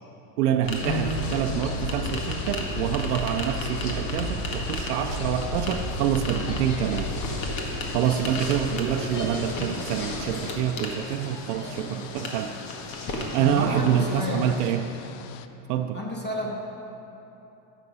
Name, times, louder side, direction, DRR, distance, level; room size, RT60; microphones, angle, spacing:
voice 1, 0.4-7.1 7.9-12.6 13.3-14.9 15.7-16.0, right 10 dB, 85° right, 6 dB, 0.7 m, -26 dB
sound 1, 0.6-14.8, left 1 dB, 50° left, 1.9 m, -32 dB
sound 2, 0.8-15.5, left 10 dB, 65° left, 0.7 m, -43 dB
voice 2, 13.4-14.4 15.9-16.5, left 2 dB, 25° left, -2 dB, 2.3 m, -30 dB
13.5 x 7.3 x 5.5 m, 3.0 s
supercardioid pair, 100°, 45 cm